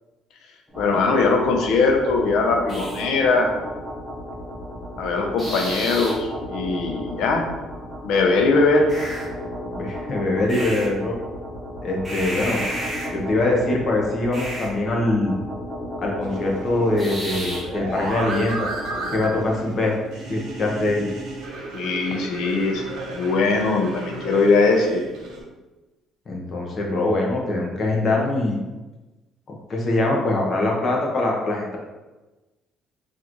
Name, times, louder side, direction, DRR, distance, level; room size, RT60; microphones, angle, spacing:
sound 1, 0.7-19.5, equal, ahead, 0.9 m, -33 dB
voice 1, 0.8-3.5 5.0-7.5 8.0-8.9 21.7-25.0, left 3 dB, 70° left, 2 dB, 0.6 m, -20 dB
voice 2, 9.8-11.2 11.8-12.6 13.1-15.4 16.0-18.7 19.1-19.9 20.3-21.0 26.3-28.6 29.5-31.8, left 2 dB, 35° left, -1 dB, 0.7 m, -23 dB
sound 2, 16.2-25.4, right 3 dB, 90° right, 0.9 m, -34 dB
3.8 x 2.5 x 3.0 m, 1.1 s
cardioid pair, 155°, 0 cm